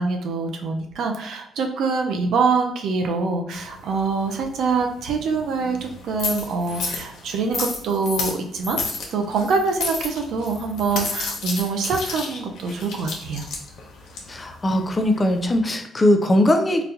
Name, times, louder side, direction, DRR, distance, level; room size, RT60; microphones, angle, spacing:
voice 1, 0.0-8.8 9.1-13.5, right 4 dB, 75° right, 4 dB, 0.5 m, -24 dB
sound 1, 3.5-15.6, left 4 dB, 75° left, 0.8 m, -32 dB
voice 2, 14.3-16.8, left 1 dB, 25° left, 5 dB, 0.5 m, -20 dB
4.0 x 2.2 x 2.7 m, 0.73 s
cardioid pair, 90°, 0 cm